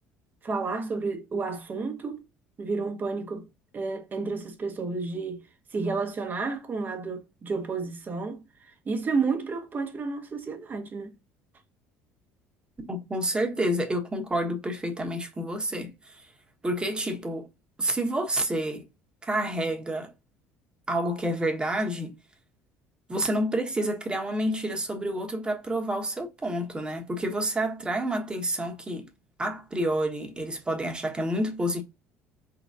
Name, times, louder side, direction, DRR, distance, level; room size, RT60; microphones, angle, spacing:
voice 1, 0.4-2.2 2.6-3.5 3.7-5.4 5.7-11.1, right 4 dB, 35° right, 1.2 m, -31 dB
voice 2, 12.8-16.3 16.6-17.5 17.8-18.9 19.2-20.1 20.9-22.2 23.1-29.1 29.4-31.8, right 1 dB, 15° right, 1.3 m, -29 dB
4.9 x 3.9 x 2.6 m
supercardioid pair, 85°, 5 cm